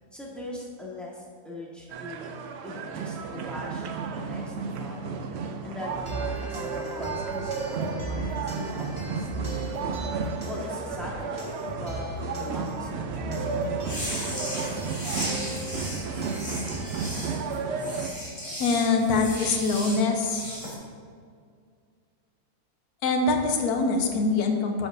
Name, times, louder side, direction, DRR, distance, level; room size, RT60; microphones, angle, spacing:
voice 1, 0.1-2.3 2.6-5.0 5.6-10.0 10.5-13.7, left 1 dB, ahead, -5 dB, 1.3 m, -40 dB
sound 1, 1.9-18.1, right 5 dB, 90° right, 0.5 m, -33 dB
sound 2, 5.9-17.0, right 1 dB, 25° right, 0.8 m, -37 dB
sound 3, 13.8-20.7, equal, 20° left, 1.6 m, -36 dB
voice 2, 18.6-20.4 23.0-24.9, left 3 dB, 70° left, 3 dB, 1.3 m, -24 dB
10.5 x 6.1 x 2.6 m, 2.1 s
omnidirectional pair, 1.7 m